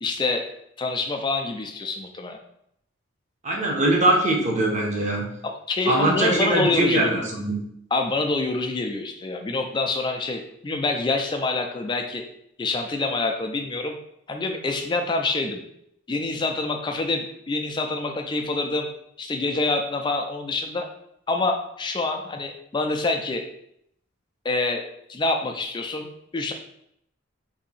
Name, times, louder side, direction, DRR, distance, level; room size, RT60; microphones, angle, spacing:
voice 1, 0.0-0.5 0.8-2.4 5.4-7.2 7.9-12.2 12.6-14.0 14.3-15.6 16.1-18.9 19.2-20.9 21.3-23.4 24.4-26.1 26.3-26.5, left 3 dB, 20° left, 4 dB, 0.3 m, -26 dB
voice 2, 3.4-5.3 5.9-7.6, right 1 dB, 35° right, -1 dB, 0.7 m, -22 dB
2.7 x 2.6 x 4.0 m, 0.73 s
head